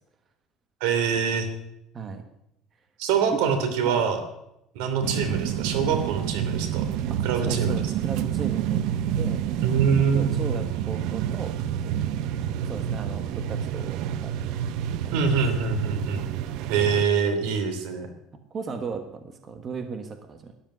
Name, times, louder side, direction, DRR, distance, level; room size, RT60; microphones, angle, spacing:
voice 1, 0.8-1.5 3.0-4.2 4.7-6.9 7.2-7.8 9.6-10.3 15.1-16.3 16.7-18.1, right 6 dB, 85° right, 8 dB, 3.0 m, -24 dB
sound 1, 5.0-17.0, right 10 dB, 65° right, 0.8 m, -28 dB
voice 2, 7.1-9.4 10.1-11.5 12.7-14.5 15.0-15.2 18.5-20.5, right 5 dB, 25° right, 7 dB, 1.4 m, -36 dB
13.0 x 10.5 x 9.4 m, 0.81 s
cardioid pair, 160°, 0 cm